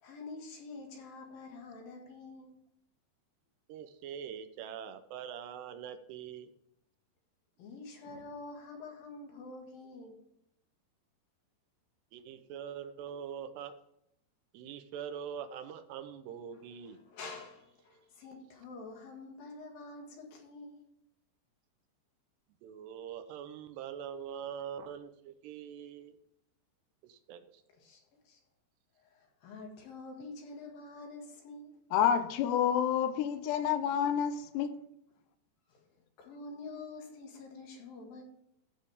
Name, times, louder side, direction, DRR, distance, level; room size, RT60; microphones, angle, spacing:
voice 1, 0.0-2.5 7.6-10.1 16.5-20.8 27.7-28.0 28.2-28.4 29.0-31.7 35.7-35.8 36.2-38.2, left 3 dB, 60° left, 3.3 m, -47 dB
voice 2, 3.7-6.5 12.1-13.7 14.5-17.0 22.6-26.2 27.0-27.4, right 8 dB, 80° right, 2.8 m, -43 dB
voice 3, 31.9-34.8, left 9 dB, 80° left, 2.7 m, -29 dB
14.5 x 6.5 x 3.5 m
omnidirectional pair, 5.0 m